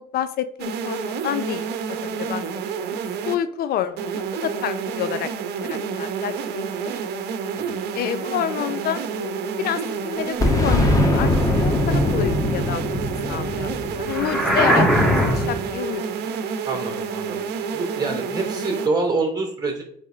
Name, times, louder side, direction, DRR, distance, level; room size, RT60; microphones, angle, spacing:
voice 1, 0.0-2.4 2.9-5.3 5.6-6.9 7.9-16.4, left 10 dB, 65° left, 12 dB, 0.5 m, -29 dB
sound 1, 0.6-3.4 4.0-18.9, right 6 dB, 75° right, 0.9 m, -29 dB
Boom, 10.4-15.1, left 1 dB, 20° left, 1.3 m, -21 dB
sound 2, 14.1-15.7, equal, ahead, 1.7 m, -19 dB
voice 2, 16.6-19.8, right 3 dB, 25° right, 2 dB, 3.2 m, -26 dB
8.4 x 3.5 x 5.2 m, 0.66 s
cardioid pair, 110°, 17 cm